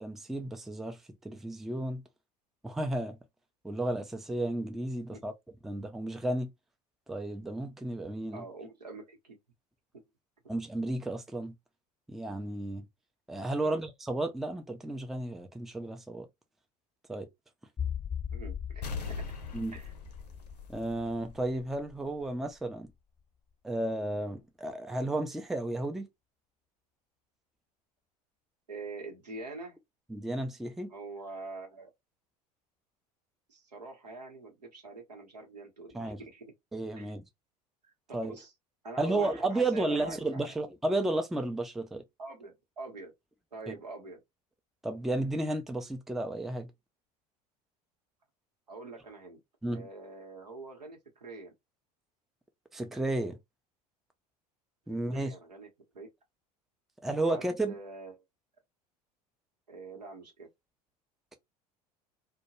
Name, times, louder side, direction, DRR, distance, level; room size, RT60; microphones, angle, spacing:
voice 1, 0.0-1.0 1.2-2.0 2.6-3.2 3.6-5.3 5.6-6.5 7.1-8.4 10.5-11.5 12.1-12.9 13.3-16.3 17.1-17.3 19.5-19.7 20.7-22.9 23.6-26.1 30.1-30.9 35.9-36.2 36.7-37.3 38.1-38.4 39.0-42.0 43.7-43.8 44.8-46.7 49.6-49.8 52.7-53.4 54.9-55.3 57.0-57.7, right 2 dB, ahead, 0.4 m, -33 dB
voice 2, 8.3-9.4 9.9-10.0 13.6-13.8 18.3-19.2 19.7-19.9 28.7-29.8 30.9-31.9 33.5-36.5 37.0-37.1 38.1-38.5 38.8-40.6 42.2-43.1 43.5-44.2 48.7-49.4 49.7-51.5 55.0-55.7 55.9-56.1 57.1-58.2 59.7-60.5, right 3 dB, 85° right, 0.9 m, -45 dB
sound 1, 17.8-23.2 23.5-23.6 24.1-24.2, left 8 dB, 20° left, 0.8 m, -40 dB
sound 2, 18.8-21.4 21.8-21.9, left 4 dB, 80° left, 0.5 m, -41 dB
2.2 x 2.2 x 2.8 m
figure-of-eight pair, 70°, 20 cm